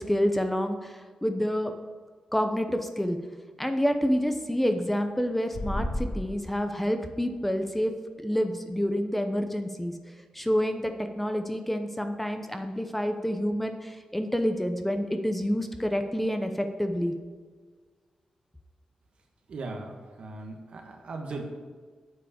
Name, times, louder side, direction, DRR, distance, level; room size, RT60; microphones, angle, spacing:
voice 1, 0.0-1.7 2.3-3.2 3.6-7.9 8.2-9.9 10.3-17.1, equal, 5° left, 6 dB, 0.7 m, -28 dB
sound 1, 5.5-6.1, left 1 dB, 60° left, 2.2 m, -30 dB
voice 2, 19.5-21.4, right 3 dB, 70° right, 2 dB, 1.4 m, -38 dB
8.3 x 4.7 x 7.3 m, 1.5 s
cardioid pair, 90°, 2 cm